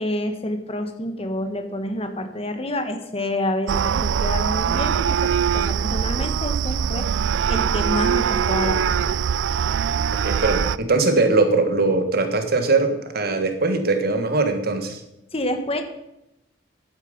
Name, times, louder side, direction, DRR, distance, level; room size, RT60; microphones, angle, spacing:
voice 1, 0.0-7.1 7.5-9.2 15.3-15.8, left 1 dB, 35° left, 7 dB, 1.5 m, -28 dB
sound 1, 3.7-10.8, right 7 dB, 80° right, 0.4 m, -22 dB
voice 2, 10.2-15.0, right 3 dB, 55° right, 7 dB, 1.6 m, -21 dB
11.5 x 9.3 x 5.3 m, 0.87 s
head